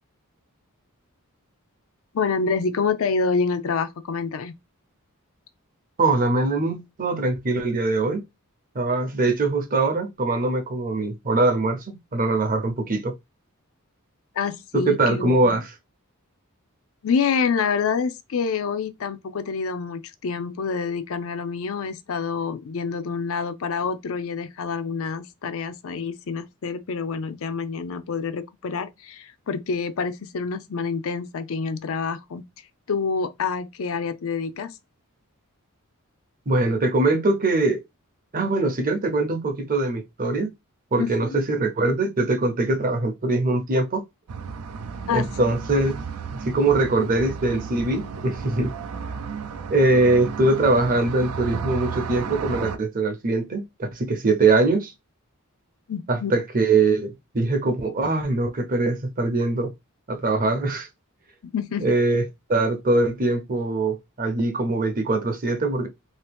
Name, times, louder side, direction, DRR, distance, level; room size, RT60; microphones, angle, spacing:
voice 1, 2.1-4.6 14.3-15.6 17.0-32.4 32.9-34.8 41.0-41.4 45.1-45.3 55.9-56.3 61.4-61.9, left 5 dB, 65° left, 0.4 m, -27 dB
voice 2, 6.0-8.2 8.7-13.1 14.7-15.7 36.5-37.8 38.3-40.5 40.9-44.0 45.1-46.0 46.3-48.7 49.7-54.9 56.1-59.7 60.1-60.9 61.8-62.2 62.5-65.9, right 2 dB, 40° right, 0.7 m, -22 dB
sound 1, 44.3-52.8, right 6 dB, 85° right, 0.5 m, -33 dB
2.8 x 2.7 x 3.4 m
head